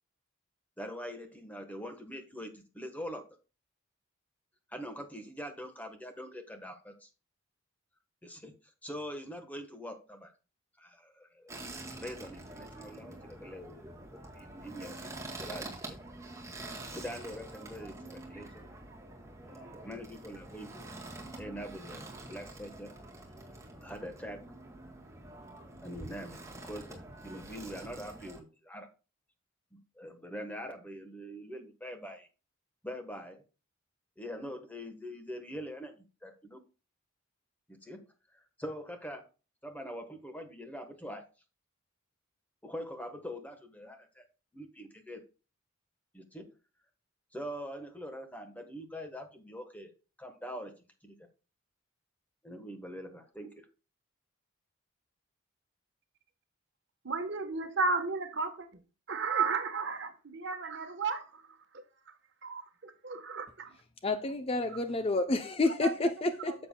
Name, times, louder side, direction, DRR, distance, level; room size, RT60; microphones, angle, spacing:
voice 1, 0.8-3.2 4.7-7.1 8.2-8.5 8.8-10.3 10.8-15.7 16.9-18.7 19.5-20.9 21.4-22.9 23.8-24.4 25.8-28.9 29.7-32.3 32.8-33.4 34.2-36.6 37.7-38.0 38.3-39.2 39.6-41.2 42.6-44.2 44.5-45.2 46.1-46.5 47.3-49.9 50.2-50.7 51.0-51.2 52.4-53.6, equal, 10° left, 1.1 m, -43 dB
sound 1, 11.5-28.4, right 2 dB, 15° right, 1.8 m, -46 dB
voice 2, 57.0-58.7 59.1-61.6 62.4-63.7 65.8-66.0 66.5-66.7, right 4 dB, 55° right, 1.1 m, -33 dB
voice 3, 64.0-66.7, left 2 dB, 30° left, 0.5 m, -29 dB
9.7 x 7.3 x 2.2 m
head